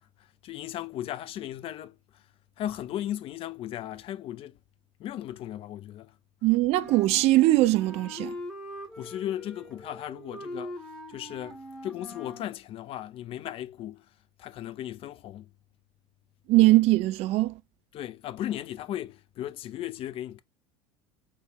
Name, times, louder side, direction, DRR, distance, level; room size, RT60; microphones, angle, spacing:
voice 1, 0.0-2.2 2.6-4.6 5.0-6.1 9.0-10.8 11.1-14.1 14.4-15.5 17.9-20.4, left 12 dB, 35° left, 0.4 m, -36 dB
voice 2, 6.4-8.3 16.5-17.5, right 18 dB, 40° right, 0.4 m, -21 dB
Wind instrument woodwind instrument, 6.7-12.5, left 1 dB, ahead, 1.1 m, -42 dB
4.2 x 2.2 x 3.4 m
figure-of-eight pair, 75°, 16 cm